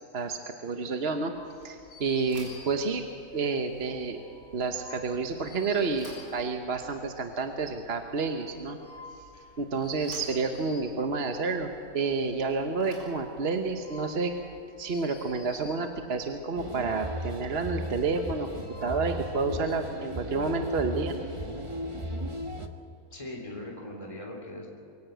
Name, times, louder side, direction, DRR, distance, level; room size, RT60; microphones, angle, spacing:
voice 1, 0.1-1.3 1.6-3.0 3.3-4.2 4.5-8.8 9.6-14.3 14.8-18.5 18.8-21.1, right 4 dB, 45° right, 5 dB, 1.2 m, -30 dB
sound 1, 1.3-19.7, left 4 dB, 60° left, 3.0 m, -52 dB
Bicycle / Thump thud, 2.3-15.3, right 1 dB, 70° right, 6.0 m, -54 dB
sound 2, 16.6-22.7, equal, 20° right, 1.1 m, -36 dB
voice 2, 23.1-24.7, left 1 dB, 20° left, 0 dB, 3.3 m, -40 dB
24.0 x 16.5 x 8.0 m, 2.6 s
omnidirectional pair, 1.6 m